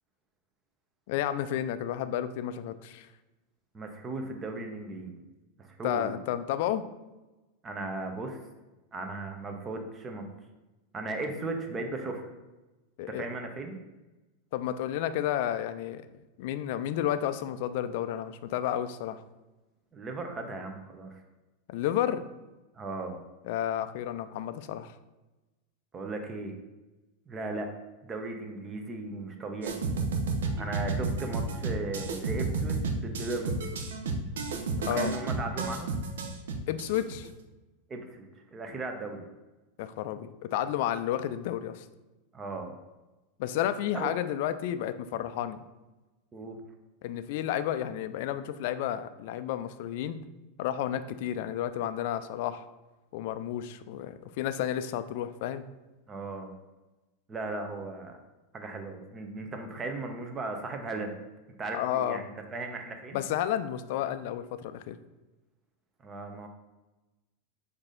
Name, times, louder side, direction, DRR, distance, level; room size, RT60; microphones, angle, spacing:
voice 1, 1.1-3.1 5.8-6.9 13.0-13.3 14.5-16.0 16.4-19.2 21.7-22.3 23.4-24.9 34.9-35.1 36.7-37.3 39.8-41.9 43.4-45.6 47.0-50.2 50.6-52.6 53.1-55.6 61.7-62.2 63.1-65.0, left 11 dB, 60° left, 12 dB, 0.3 m, -31 dB
voice 2, 3.7-5.1 5.6-6.1 7.6-8.4 8.9-10.3 10.9-12.3 13.1-13.8 19.9-21.2 22.8-23.2 25.9-26.5 27.3-27.7 28.0-29.8 30.6-33.6 34.8-35.9 37.9-39.3 42.3-42.8 43.9-44.1 46.3-46.6 56.1-56.5 57.3-58.2 58.5-61.1 61.6-63.2 66.0-66.5, right 3 dB, 25° right, 4 dB, 0.7 m, -37 dB
sound 1, 29.6-37.3, right 4 dB, 75° right, 0.6 m, -31 dB
4.7 x 2.7 x 3.8 m, 1.1 s
hypercardioid pair, 100°, 0 cm